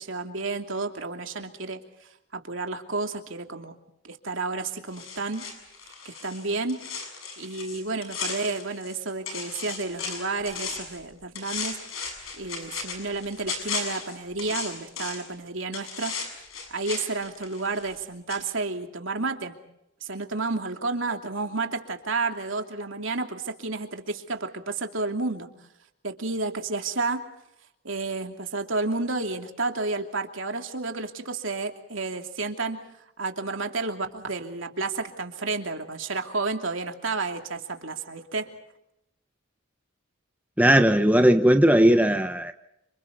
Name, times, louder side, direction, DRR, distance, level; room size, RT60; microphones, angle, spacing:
voice 1, 0.0-1.8 2.3-3.7 4.0-5.4 6.0-6.8 7.4-11.8 12.4-16.2 16.7-19.6 20.0-25.5 26.0-27.3 27.8-32.8 33.2-38.5, right 3 dB, 70° right, 2.8 m, -31 dB
sound 1, 4.9-9.0 9.3-11.0 11.4-15.3 15.7-18.0 18.3-18.4, left 5 dB, 85° left, 7.0 m, -36 dB
voice 2, 40.6-42.5, right 1 dB, 10° right, 0.9 m, -18 dB
30.0 x 27.0 x 4.0 m
head